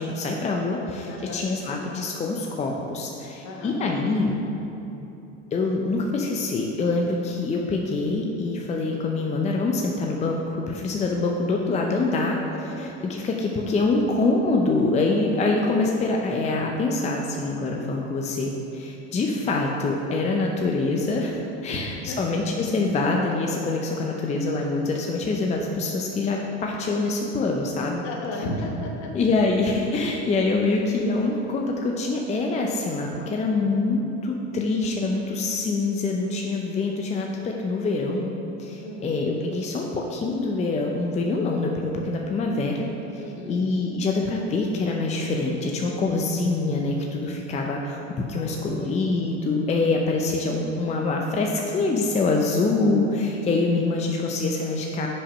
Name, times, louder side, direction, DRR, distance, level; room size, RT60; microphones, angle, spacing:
voice 1, 0.0-4.4 5.5-12.4 12.8-28.0 29.1-38.3 38.6-42.9 43.1-43.2 43.5-48.0 48.3-55.1, left 3 dB, 20° left, 0 dB, 0.6 m, -25 dB
voice 2, 1.1-1.5 3.4-3.8 12.5-12.8 22.1-22.2 28.0-29.1 29.9-30.0 38.8-39.1 43.2-43.6 48.3-48.8, left 1 dB, 55° left, 0 dB, 1.3 m, -34 dB
5.6 x 5.1 x 5.5 m, 3.0 s
hypercardioid pair, 85°, 33 cm